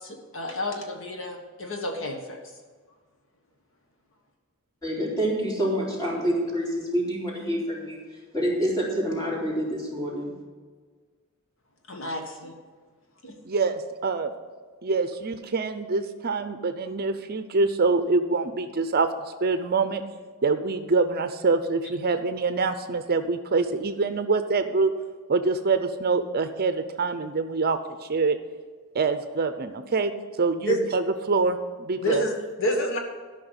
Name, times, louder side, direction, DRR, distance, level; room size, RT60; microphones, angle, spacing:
voice 1, 0.0-2.4 11.9-12.5 13.2-13.4 30.6-30.8 32.0-33.0, equal, 65° left, 3 dB, 1.4 m, -29 dB
voice 2, 4.8-8.0 8.3-10.3, equal, 20° left, -4 dB, 3.6 m, -27 dB
voice 3, 13.4-14.3 14.8-19.1 19.4-20.0 20.4-24.9 25.3-27.8 28.1-28.4 28.9-30.1 30.4-32.2, right 4 dB, 45° right, 9 dB, 0.6 m, -25 dB
13.0 x 5.8 x 7.9 m, 1.5 s
head